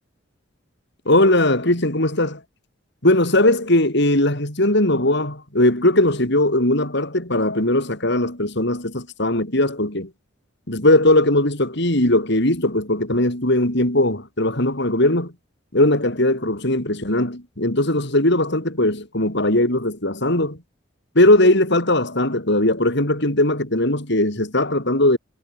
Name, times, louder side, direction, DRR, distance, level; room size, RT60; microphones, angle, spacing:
voice 1, 1.1-2.4 3.0-10.1 10.7-15.3 15.7-20.6 21.2-25.2, left 1 dB, 65° left, 6.9 m, -19 dB
head